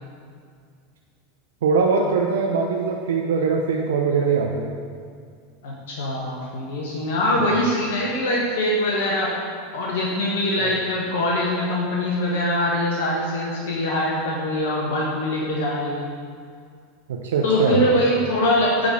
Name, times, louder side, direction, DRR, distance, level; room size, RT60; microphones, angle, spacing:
voice 1, 1.6-4.7 7.4-7.5 10.6-10.7 17.1-17.8, right 5 dB, 70° right, 0 dB, 0.5 m, -22 dB
voice 2, 5.6-9.3 9.7-16.0 17.4-18.9, left 1 dB, 65° left, -3 dB, 1.1 m, -23 dB
8.5 x 3.9 x 6.2 m, 2.2 s
figure-of-eight pair, 85°, 0 cm